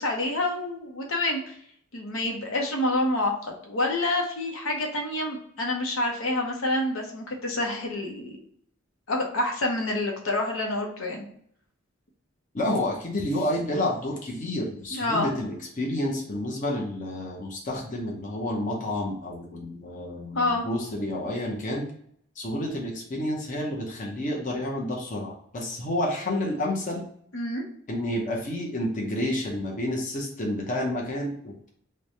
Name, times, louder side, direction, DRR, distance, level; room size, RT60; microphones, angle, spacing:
voice 1, 0.0-1.6 1.9-8.4 9.1-11.2 14.9-15.3 20.3-20.7 27.3-27.6, left 2 dB, 75° left, 1 dB, 0.8 m, -27 dB
voice 2, 12.5-21.9 22.4-27.0 27.9-31.7, left 1 dB, 40° left, -1 dB, 0.7 m, -30 dB
3.3 x 2.2 x 4.0 m, 0.66 s
head